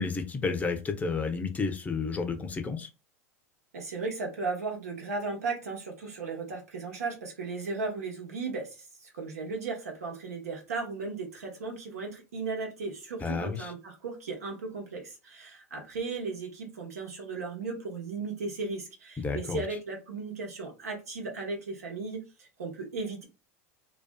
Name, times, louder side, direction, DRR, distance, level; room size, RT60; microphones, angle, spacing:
voice 1, 0.0-2.9 13.2-13.7 19.2-19.6, left 4 dB, 20° left, 0.5 m, -31 dB
voice 2, 3.7-23.2, right 4 dB, 85° right, 0.9 m, -36 dB
2.4 x 2.3 x 2.2 m
hypercardioid pair, 90°, 8 cm